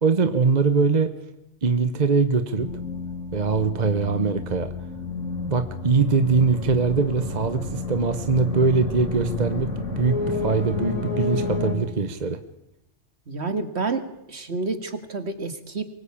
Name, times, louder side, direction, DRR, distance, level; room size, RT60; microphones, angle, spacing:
voice 1, 0.0-1.1 1.6-2.7 3.3-4.7 5.5-9.7 10.0-12.4, right 4 dB, 40° right, 10 dB, 1.1 m, -22 dB
sound 1, 2.6-11.8, left 3 dB, 85° left, 3.9 m, -30 dB
voice 2, 13.3-15.8, right 3 dB, 60° right, 9 dB, 2.3 m, -29 dB
24.0 x 20.0 x 8.7 m, 0.84 s
omnidirectional pair, 1.2 m